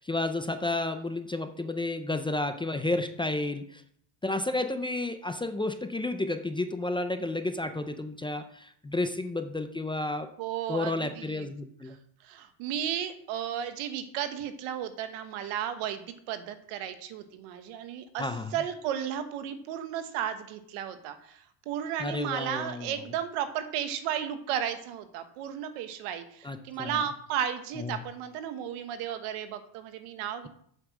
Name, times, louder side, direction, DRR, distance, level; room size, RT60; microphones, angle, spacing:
voice 1, 0.0-3.8 4.2-10.3 10.7-12.0 18.2-18.5 22.0-22.9 26.4-27.0 27.8-28.0, left 2 dB, 10° left, 8 dB, 0.4 m, -31 dB
voice 2, 10.4-11.5 11.9-12.0 12.2-30.5, right 9 dB, 90° right, 9 dB, 1.3 m, -34 dB
8.0 x 5.8 x 7.2 m, 0.65 s
cardioid pair, 140°, 49 cm